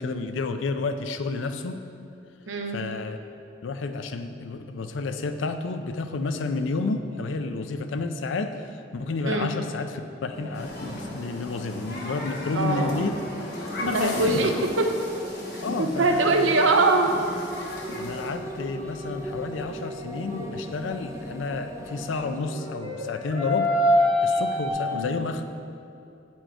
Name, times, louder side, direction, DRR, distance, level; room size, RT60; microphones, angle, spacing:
voice 1, 0.0-1.8 2.7-3.2 3.6-13.2 13.9-14.5 15.6-16.5 18.0-23.9 24.2-25.4, left 3 dB, 80° left, 8 dB, 0.4 m, -30 dB
voice 2, 2.5-2.8 9.2-9.5 12.6-13.1 13.9-14.9 15.8-17.1 24.9-25.2, right 2 dB, 80° right, 4 dB, 0.7 m, -23 dB
sound 1, 10.3-22.4, right 1 dB, 15° right, 0.4 m, -40 dB
Human group actions, 10.5-18.3, left 1 dB, 55° left, 1.3 m, -36 dB
sound 2, 17.7-20.7 22.4-24.7, left 1 dB, 30° right, 1.2 m, -27 dB
8.8 x 4.4 x 4.5 m, 2.6 s
head